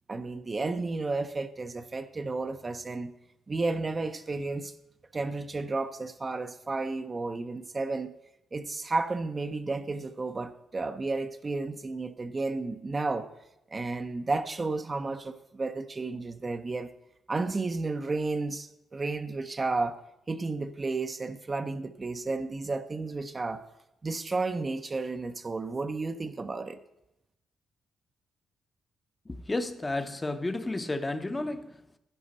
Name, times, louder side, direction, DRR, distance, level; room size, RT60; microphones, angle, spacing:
voice 1, 0.1-3.1 3.5-4.7 5.1-8.1 8.5-13.3 13.7-16.9 17.3-20.0 20.3-23.6 24.0-26.8, right 3 dB, 25° right, 8 dB, 0.5 m, -32 dB
voice 2, 29.3-32.0, left 2 dB, 15° left, 9 dB, 0.7 m, -32 dB
11.0 x 10.5 x 4.1 m, 0.87 s
cardioid pair, 135°, 0 cm